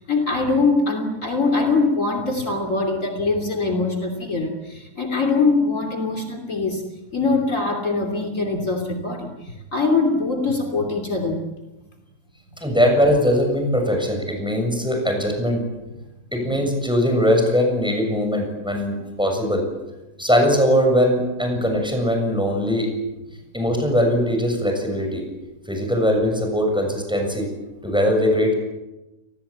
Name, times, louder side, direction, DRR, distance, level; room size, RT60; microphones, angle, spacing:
voice 1, 0.1-6.8 7.1-11.4 16.5-16.6 21.5-21.6, left 3 dB, 55° left, 3 dB, 3.3 m, -22 dB
voice 2, 12.6-15.6 16.3-19.6 20.2-22.9 23.5-25.2 25.7-27.5 27.8-28.5, equal, 5° right, 3 dB, 7.2 m, -20 dB
30.0 x 19.5 x 8.7 m, 1.1 s
omnidirectional pair, 1.7 m